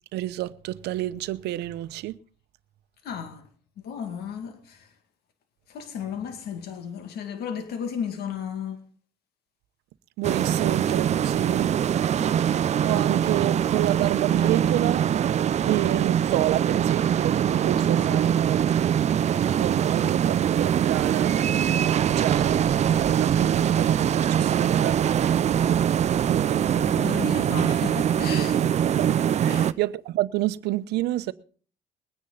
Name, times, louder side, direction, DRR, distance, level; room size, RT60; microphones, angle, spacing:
voice 1, 0.1-2.2 10.2-11.7 12.8-15.1 15.7-18.6 19.6-21.3 21.7-25.0 26.3-27.0 28.6-31.3, right 15 dB, 80° right, 0.9 m, -29 dB
voice 2, 3.0-3.4 3.8-4.9 5.7-8.8 18.1-18.2 20.0-20.1 26.5-28.6 29.5-29.7, left 7 dB, 70° left, 2.3 m, -34 dB
sound 1, 10.2-29.7, right 9 dB, 40° right, 0.6 m, -23 dB
21.5 x 9.9 x 4.0 m
cardioid pair, 110°, 17 cm